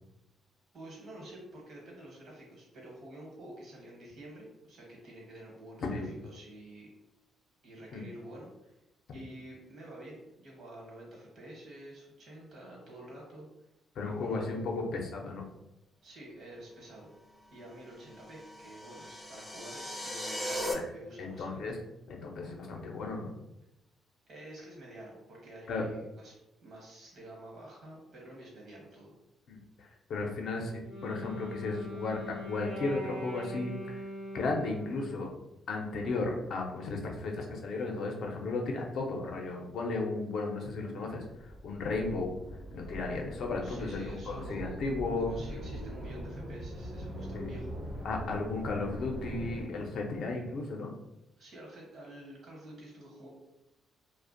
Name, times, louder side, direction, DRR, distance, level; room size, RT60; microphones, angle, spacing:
voice 1, 0.7-6.9 7.6-8.7 9.1-13.5 14.0-14.4 16.0-17.1 17.5-21.8 24.3-26.3 26.6-29.2 43.6-44.8 45.2-48.1 51.4-53.3, right 1 dB, 60° right, -2 dB, 1.0 m, -49 dB
voice 2, 14.0-15.4 20.7-20.8 21.2-21.8 22.1-23.3 25.7-25.9 29.5-34.0 34.3-35.3 35.7-41.2 41.6-42.3 42.7-45.3 47.3-47.5 48.0-50.9, left 3 dB, 65° left, 1 dB, 0.5 m, -34 dB
sound 1, 18.2-20.7, left 1 dB, 10° left, 0.4 m, -38 dB
Wind instrument woodwind instrument, 30.6-35.2, left 1 dB, 90° right, 0.9 m, -42 dB
sound 2, 41.4-49.6, equal, 40° right, 0.5 m, -42 dB
2.5 x 2.0 x 2.5 m, 0.89 s
cardioid pair, 90°, 0 cm